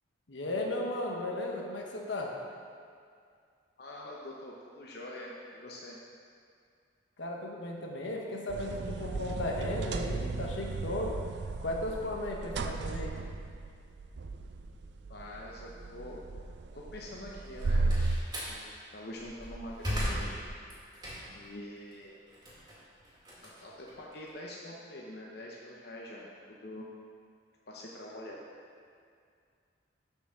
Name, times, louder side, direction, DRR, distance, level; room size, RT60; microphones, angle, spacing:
voice 1, 0.3-2.4 7.2-11.2 11.6-13.2, left 1 dB, 80° left, 0 dB, 1.1 m, -35 dB
voice 2, 3.8-6.0 15.1-16.2 16.7-17.9 18.5-20.4 21.3-22.1 23.4-26.9 27.7-28.4, left 1 dB, 55° left, -3 dB, 0.8 m, -45 dB
sound 1, 8.5-18.2, right 3 dB, 65° right, 0.4 m, -35 dB
Slam, 17.4-18.6 19.1-21.5 21.9-24.3, equal, 20° right, 2.0 m, -37 dB
7.0 x 5.8 x 6.2 m, 2.3 s
head